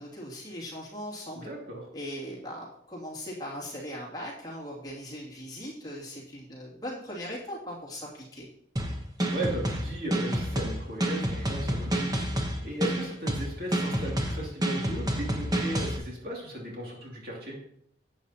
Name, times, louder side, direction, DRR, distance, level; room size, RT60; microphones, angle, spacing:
voice 1, 0.0-1.5 1.9-8.5, equal, 20° left, -5 dB, 2.6 m, -39 dB
voice 2, 1.3-1.9 9.3-12.2 12.6-17.6, right 1 dB, 55° right, -2 dB, 2.7 m, -36 dB
sound 1, 8.8-16.0, right 1 dB, 20° right, 1.0 m, -29 dB
11.5 x 8.5 x 2.9 m, 0.72 s
head